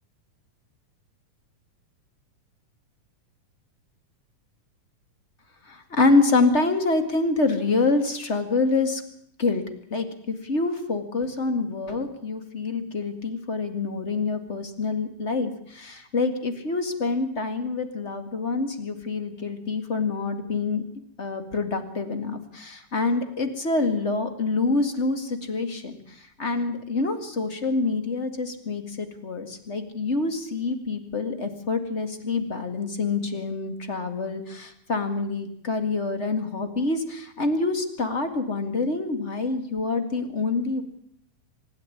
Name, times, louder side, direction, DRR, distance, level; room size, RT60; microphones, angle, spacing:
voice 1, 5.7-9.0 9.4-9.6 9.9-20.8 21.2-26.0 26.4-40.8, left 3 dB, 25° left, 8 dB, 1.6 m, -26 dB
24.5 x 11.0 x 9.8 m, 0.70 s
omnidirectional pair, 3.7 m